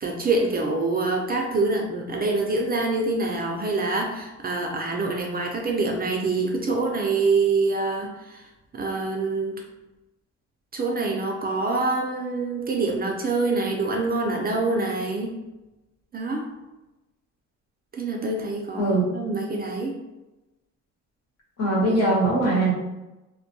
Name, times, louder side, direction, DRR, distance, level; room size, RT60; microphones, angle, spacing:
voice 1, 0.0-8.5 8.7-9.6 10.7-15.3 16.1-16.5 17.9-19.9, right 3 dB, 30° right, 1 dB, 0.4 m, -25 dB
voice 2, 21.6-22.7, right 1 dB, 55° left, -5 dB, 1.1 m, -21 dB
2.2 x 2.2 x 2.7 m, 1.0 s
cardioid pair, 90°, 30 cm